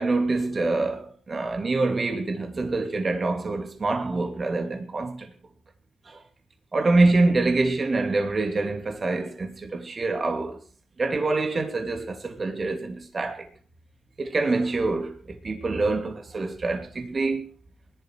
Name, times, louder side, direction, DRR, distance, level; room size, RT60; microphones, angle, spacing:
voice 1, 0.0-5.3 6.1-6.2 6.7-10.6 11.0-13.5 14.2-15.2 15.4-17.5, right 3 dB, 45° right, 2.7 m, -25 dB
19.5 x 11.5 x 4.8 m
cardioid pair, 70°, 0 cm